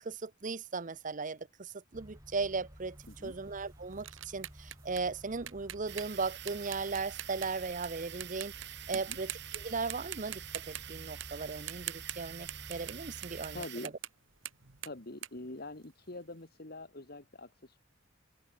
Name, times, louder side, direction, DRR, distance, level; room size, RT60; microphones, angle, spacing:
voice 1, 0.0-3.0 3.2-8.5 8.9-13.6, right 4 dB, 40° right, 0.8 m, -37 dB
sound 1, 1.9-13.7, equal, 15° right, 3.4 m, -53 dB
sound 2, 3.0-7.9 8.2-8.7 8.9-9.6 9.9-13.0 13.2-16.2, right 12 dB, 85° right, 1.8 m, -44 dB
sound 3, 5.9-13.9, right 12 dB, 60° right, 2.9 m, -47 dB
voice 2, 13.5-13.9 14.8-17.8, left 2 dB, 50° left, 2.1 m, -45 dB
head